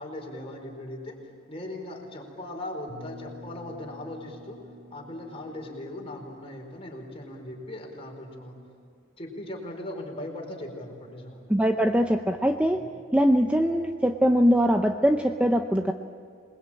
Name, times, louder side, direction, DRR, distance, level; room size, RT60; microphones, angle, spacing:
voice 1, 0.0-4.6 4.9-8.6 9.2-11.5, left 1 dB, 25° left, 1 dB, 4.5 m, -39 dB
sound 1, 2.9-8.6, left 1 dB, 60° right, 6.2 m, -49 dB
voice 2, 11.5-12.8 13.1-15.9, equal, 5° right, 5 dB, 0.7 m, -22 dB
27.0 x 21.0 x 8.9 m, 2.4 s
head